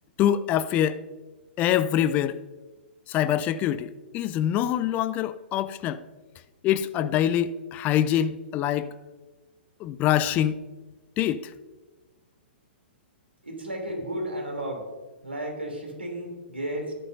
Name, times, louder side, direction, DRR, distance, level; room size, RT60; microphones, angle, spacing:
voice 1, 0.2-1.0 1.6-2.4 3.1-6.0 6.6-8.9 9.8-10.6 11.2-11.5, left 11 dB, 25° left, 0.4 m, -25 dB
voice 2, 13.4-14.9 15.2-16.9, right 1 dB, 85° right, 2.9 m, -33 dB
13.5 x 12.0 x 2.6 m
figure-of-eight pair, 115°, 6 cm